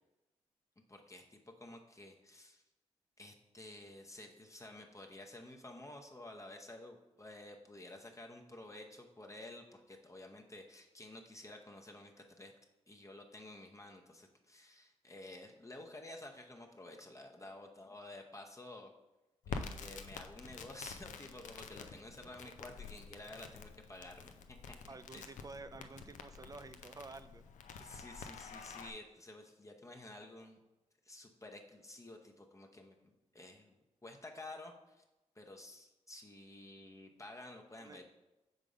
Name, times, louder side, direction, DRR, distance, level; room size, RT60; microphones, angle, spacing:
voice 1, 0.9-2.6 3.2-12.1 12.4-12.5 12.9-18.9 19.5-24.7 25.1-25.3 25.7-25.8 27.8-30.6 31.0-33.8 34.0-35.0 35.4-38.0, left 1 dB, 25° left, 2 dB, 0.7 m, -52 dB
Crackle, 19.4-28.9, left 5 dB, 75° left, 0.4 m, -48 dB
voice 2, 24.9-27.5 37.8-38.0, right 3 dB, 30° right, 12 dB, 0.4 m, -50 dB
5.2 x 3.7 x 5.1 m, 1.0 s
supercardioid pair, 50°, 13 cm